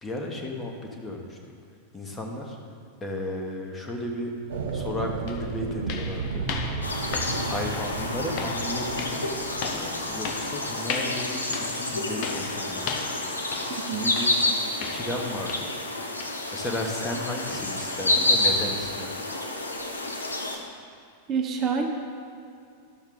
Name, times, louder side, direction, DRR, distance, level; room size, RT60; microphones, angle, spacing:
voice 1, 0.0-1.4 1.9-2.6 3.0-6.4 7.3-9.2 9.7-13.1 13.9-14.4 14.9-15.7 16.1-19.1, left 1 dB, 15° left, 1 dB, 1.3 m, -34 dB
sound 1, 4.5-10.7, right 5 dB, 60° right, 0.6 m, -34 dB
sound 2, 4.7-4.8 5.3-15.9 16.2-16.5 16.9-17.0 17.5-17.6 18.2-18.3, left 5 dB, 45° left, 0.8 m, -37 dB
sound 3, 6.8-20.6, left 2 dB, 80° left, 0.9 m, -29 dB
voice 2, 13.7-14.1 21.3-21.9, right 6 dB, 35° right, 2 dB, 0.9 m, -27 dB
12.0 x 7.0 x 3.9 m, 2.3 s
figure-of-eight pair, 90°, 0 cm